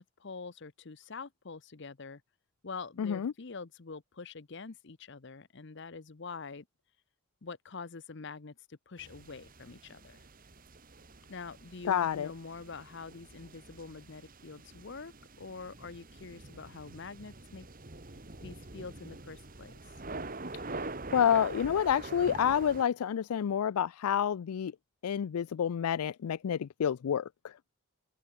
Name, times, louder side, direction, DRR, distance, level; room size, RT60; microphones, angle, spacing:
voice 1, 0.0-2.2 2.6-6.7 7.4-10.3 11.3-15.1 15.4-17.7 18.4-19.7, left 4 dB, 55° left, 0.8 m, -45 dB
voice 2, 3.0-3.3 11.9-12.3 21.1-24.7 25.0-27.3, left 8 dB, 85° left, 0.4 m, -28 dB
sound 1, 9.0-22.8, right 3 dB, 40° right, 1.7 m, -45 dB
open air
head